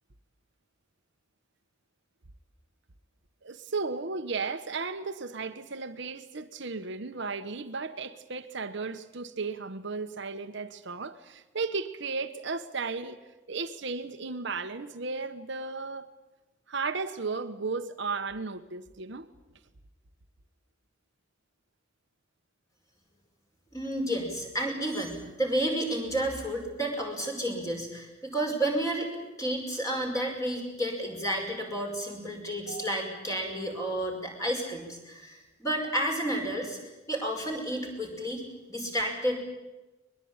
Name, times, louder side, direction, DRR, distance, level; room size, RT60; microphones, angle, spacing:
voice 1, 3.4-13.2 13.5-16.1 16.7-19.3 32.7-33.1 38.2-38.3, right 4 dB, 60° right, 1.1 m, -35 dB
voice 2, 23.7-29.1 29.4-38.4 38.7-39.4, right 1 dB, 15° left, 5.4 m, -31 dB
22.5 x 21.5 x 8.8 m
head